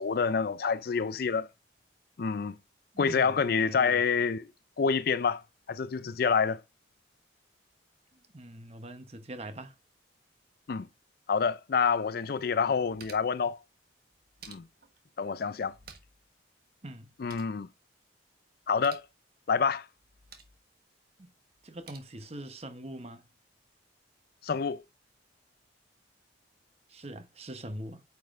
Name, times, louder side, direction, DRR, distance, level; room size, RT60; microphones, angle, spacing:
voice 1, 0.0-1.5 2.2-2.5 3.0-4.5 4.8-5.4 5.7-6.6 10.7-10.9 11.3-13.6 14.5-14.7 15.2-15.7 17.2-17.7 18.7-19.0 19.5-19.8 24.4-24.8, left 5 dB, 50° left, 0.4 m, -27 dB
voice 2, 2.9-3.4 3.7-4.0 8.3-9.7 16.8-17.1 21.2-21.3 21.6-23.3 26.9-28.0, right 1 dB, 35° right, 0.9 m, -42 dB
sound 1, 12.5-13.4 14.1-15.0 15.6-16.3 16.5-16.6 17.0-17.6 18.6-19.1 20.0-20.6 21.5-22.0, right 6 dB, 50° right, 1.4 m, -53 dB
9.3 x 5.1 x 2.5 m
head